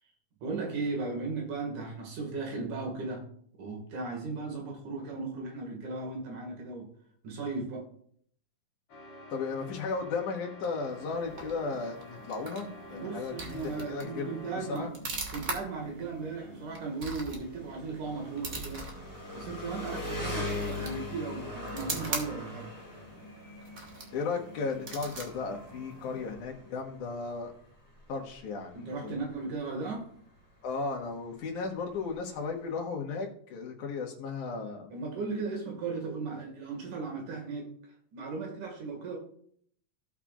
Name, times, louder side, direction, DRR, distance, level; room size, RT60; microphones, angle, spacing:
voice 1, 0.4-3.3 3.6-6.9 7.2-7.9 12.9-14.9 15.3-18.9 19.3-22.7 28.7-30.1 34.9-37.7 38.1-39.2, right 4 dB, 85° right, 1 dB, 3.5 m, -36 dB
sound 1, 8.9-15.0, left 1 dB, 50° left, 2.5 m, -49 dB
voice 2, 9.3-13.3 13.6-14.3 14.7-14.9 24.1-27.5 28.1-29.2 30.6-34.9, left 4 dB, 85° left, 1 dB, 2.9 m, -35 dB
sound 2, 10.9-26.4, right 2 dB, 45° right, 1.1 m, -43 dB
Engine, 13.3-32.8, left 2 dB, 10° left, 1.5 m, -43 dB
16.0 x 5.7 x 2.5 m, 0.62 s
omnidirectional pair, 3.4 m